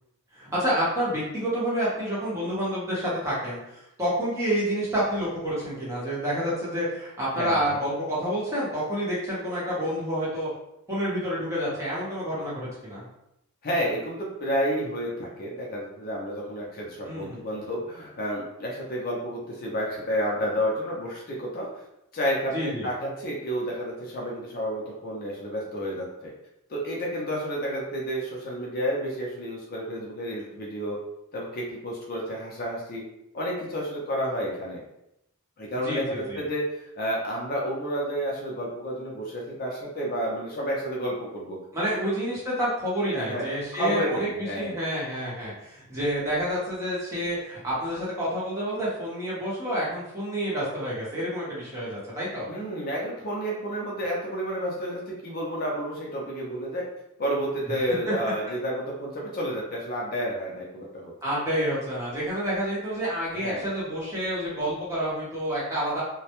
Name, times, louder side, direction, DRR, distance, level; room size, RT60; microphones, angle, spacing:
voice 1, 0.3-10.5 10.9-13.1 17.0-17.4 22.5-22.9 35.8-36.4 41.7-52.5 58.1-58.2 61.2-66.0, equal, 15° right, -8 dB, 0.8 m, -29 dB
voice 2, 13.6-21.7 22.1-26.3 26.7-31.0 31.3-33.0 33.3-34.8 35.6-36.7 37.0-41.6 41.9-42.1 43.1-43.4 43.7-44.8 52.5-56.8 57.2-61.1 63.4-63.7, equal, 40° left, -3 dB, 0.5 m, -30 dB
2.1 x 2.0 x 2.8 m, 0.83 s
head